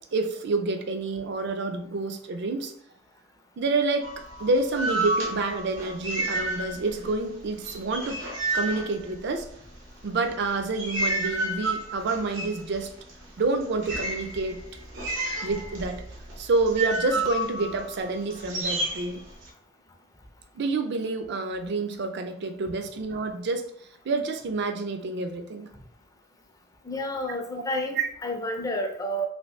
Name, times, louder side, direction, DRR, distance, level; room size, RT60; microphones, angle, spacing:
voice 1, 0.1-2.7 3.6-4.1 4.4-8.2 8.5-9.5 10.0-12.9 13.4-14.6 15.4-16.0 16.4-19.2 20.6-23.7 24.0-25.7 28.0-28.1, right 3 dB, 60° right, 7 dB, 0.4 m, -28 dB
sound 1, 4.0-7.1 7.4-9.7 10.3-19.5, right 2 dB, 85° right, 0.8 m, -31 dB
voice 2, 26.9-29.3, equal, 20° left, 4 dB, 0.4 m, -30 dB
2.7 x 2.5 x 3.2 m, 0.65 s
head